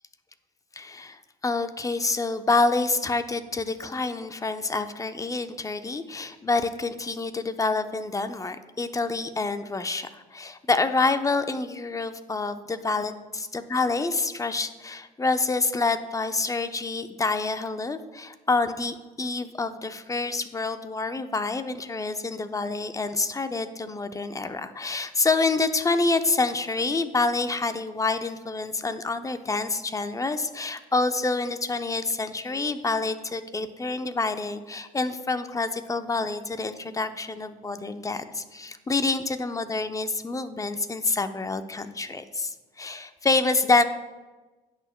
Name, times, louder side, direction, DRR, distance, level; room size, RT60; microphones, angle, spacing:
voice 1, 0.7-43.8, left 3 dB, 15° left, 10 dB, 0.7 m, -27 dB
17.5 x 6.4 x 2.2 m, 1.2 s
hypercardioid pair, 65°, 19 cm